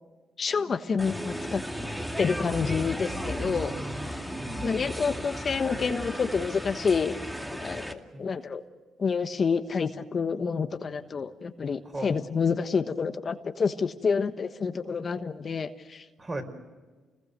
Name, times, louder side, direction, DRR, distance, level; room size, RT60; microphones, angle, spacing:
voice 1, 0.4-1.6 2.2-3.7 4.1-4.2 4.6-7.2 7.6-8.6 9.0-16.0, left 5 dB, 45° left, 8 dB, 1.2 m, -28 dB
newjersey OC jillysambiance, 1.0-7.9, equal, 5° right, 2.3 m, -35 dB
voice 2, 3.4-4.8 8.1-8.3 11.8-12.1 16.2-16.4, right 2 dB, 25° right, 5 dB, 5.2 m, -38 dB
29.5 x 20.5 x 6.8 m, 1.3 s
cardioid pair, 90°, 0 cm